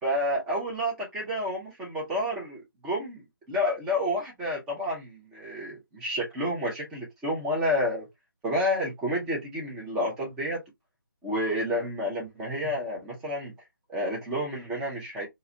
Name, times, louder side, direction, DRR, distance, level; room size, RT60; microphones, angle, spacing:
voice 1, 0.0-8.1 8.4-10.6 11.2-13.5 13.9-15.3, equal, 5° right, 0.4 m, -30 dB
3.9 x 2.5 x 2.5 m
figure-of-eight pair, 165°, 12 cm